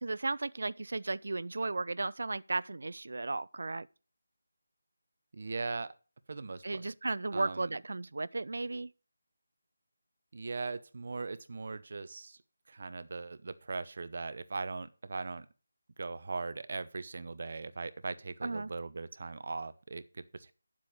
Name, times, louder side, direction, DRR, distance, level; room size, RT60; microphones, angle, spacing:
voice 1, 0.0-3.9 6.6-8.9 18.4-18.7, right 3 dB, 70° right, 0.4 m, -35 dB
voice 2, 5.3-5.9 6.3-6.9 7.3-7.7 10.3-12.4 12.7-15.5 16.0-20.5, right 3 dB, 55° right, 0.9 m, -39 dB
10.0 x 7.6 x 5.2 m
figure-of-eight pair, 165°, 0 cm